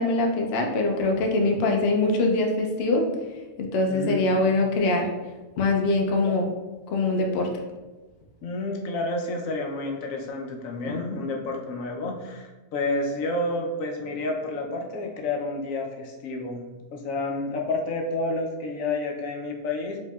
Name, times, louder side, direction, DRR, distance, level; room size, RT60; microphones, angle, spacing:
voice 1, 0.0-3.1 3.6-5.1 5.6-6.5 6.9-7.5 10.8-11.2, left 2 dB, 60° left, 1 dB, 0.7 m, -23 dB
voice 2, 3.9-4.3 8.4-16.6 16.9-20.0, left 2 dB, 80° left, 1 dB, 1.0 m, -30 dB
4.5 x 2.7 x 2.3 m, 1.2 s
omnidirectional pair, 1.4 m